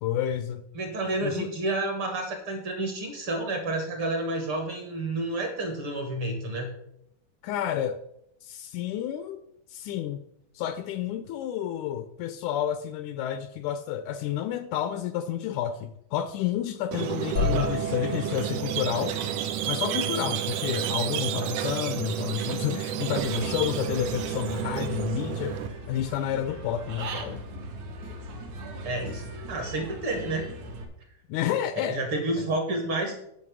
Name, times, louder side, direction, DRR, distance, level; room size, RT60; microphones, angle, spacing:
voice 1, 0.0-0.6 1.2-1.5 7.4-8.0 8.4-9.4 9.7-10.2 10.6-19.2 19.7-25.6 25.9-27.5 31.3-32.0, left 10 dB, 80° left, 10 dB, 1.9 m, -30 dB
voice 2, 0.7-6.7 17.3-17.7 28.8-30.5 31.9-33.1, right 2 dB, 50° right, 3 dB, 2.0 m, -30 dB
Squeak, 16.9-25.7, right 10 dB, 90° right, 1.4 m, -31 dB
sound 1, 17.4-21.1, left 3 dB, 60° left, 1.1 m, -34 dB
Human voice / Bird, 23.2-30.8, right 2 dB, 65° right, 2.8 m, -39 dB
9.4 x 6.0 x 6.1 m, 0.77 s
omnidirectional pair, 3.8 m